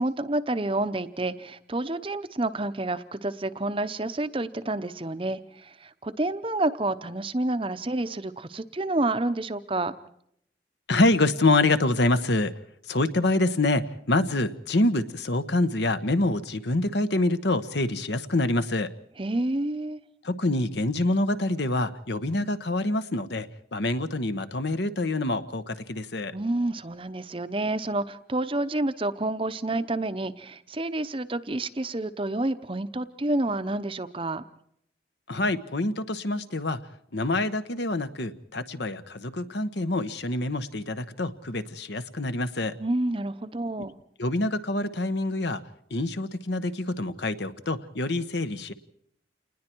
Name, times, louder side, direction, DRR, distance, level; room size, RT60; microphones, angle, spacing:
voice 1, 0.0-9.9 19.2-20.0 26.3-34.4 42.8-44.0, right 2 dB, 30° right, 12 dB, 0.8 m, -29 dB
voice 2, 10.9-12.5 12.9-18.9 20.2-26.3 35.3-36.8 37.1-42.8 43.8-43.9 44.2-45.6 45.9-48.7, left 2 dB, 65° left, 11 dB, 1.1 m, -26 dB
28.5 x 20.0 x 4.6 m, 0.71 s
head